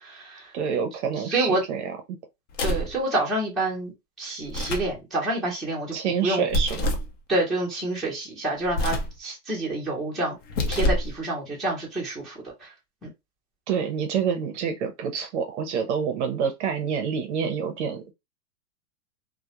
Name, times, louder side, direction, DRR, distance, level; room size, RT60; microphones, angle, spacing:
voice 1, 0.0-0.5 1.2-1.6 2.6-3.9 4.2-5.9 6.2-6.4 7.3-10.4 10.7-12.7 13.0-13.1, right 2 dB, ahead, 0.6 m, -28 dB
voice 2, 0.5-1.9 5.9-6.9 13.7-18.1, right 7 dB, 45° right, 0.6 m, -27 dB
sound 1, 2.5-3.0 4.4-5.0 6.5-7.1 8.7-9.2 10.4-11.1, left 1 dB, 50° left, 0.7 m, -26 dB
2.2 x 2.1 x 2.8 m
hypercardioid pair, 145°, 48 cm